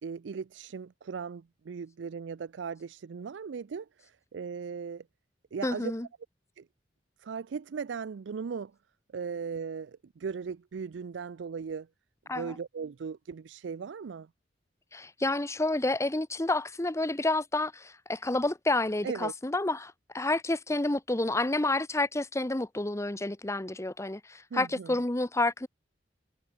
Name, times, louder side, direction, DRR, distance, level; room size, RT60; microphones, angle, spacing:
voice 1, 0.0-5.1 5.5-5.9 6.6-6.7 7.2-8.7 9.1-11.9 12.3-14.3 19.0-19.3 24.5-25.0, right 6 dB, 80° right, 0.4 m, -38 dB
voice 2, 5.6-6.1 12.3-12.6 14.9-25.7, left 2 dB, 15° left, 0.9 m, -29 dB
head